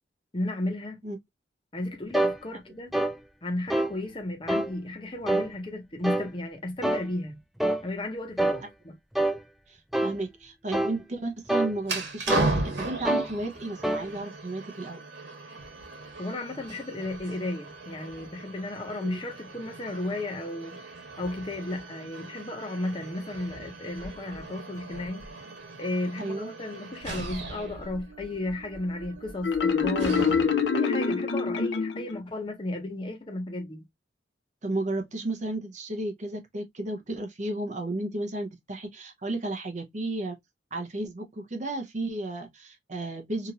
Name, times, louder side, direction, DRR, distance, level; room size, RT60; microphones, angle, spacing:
voice 1, 0.3-1.0 1.7-3.0 3.4-7.4 7.8-9.0 16.2-20.8 21.2-25.3 25.8-30.2 30.7-33.8, left 1 dB, 30° left, 0.8 m, -34 dB
sound 1, 2.1-2.4 2.9-3.2 3.7-3.9 4.5-4.7 5.3-5.5 6.0-6.3 6.8-7.1 7.6-7.8 8.4-8.6 9.1-9.4 9.9-10.2 10.7-11.0 11.5-11.7 12.3-12.5 13.0-13.3 13.8-14.0, right 1 dB, ahead, 0.3 m, -26 dB
voice 2, 9.7-15.0 19.0-19.2 26.2-26.5 34.6-40.4 40.7-43.5, right 2 dB, 40° right, 0.7 m, -33 dB
sound 2, 11.8-30.7, right 3 dB, 80° right, 1.2 m, -37 dB
Marimba xylophone, 29.4-32.2, left 5 dB, 80° left, 0.5 m, -25 dB
2.9 x 2.5 x 2.8 m
head